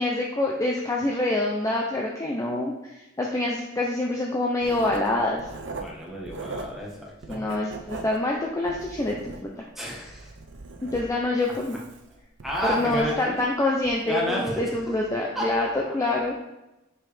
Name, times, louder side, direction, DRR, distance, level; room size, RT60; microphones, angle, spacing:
voice 1, 0.0-5.5 7.3-9.3 10.9-11.8 12.7-16.3, left 2 dB, 15° left, -2 dB, 0.5 m, -26 dB
Writing, 4.6-6.9 7.2-9.7 10.1-13.4 13.8-14.0, right 3 dB, 65° right, 0.6 m, -40 dB
voice 2, 5.7-7.4 9.7-10.3 12.4-13.5 14.1-14.8 15.3-15.5 16.0-16.2, equal, ahead, -5 dB, 1.4 m, -31 dB
6.0 x 4.9 x 3.4 m, 0.96 s
head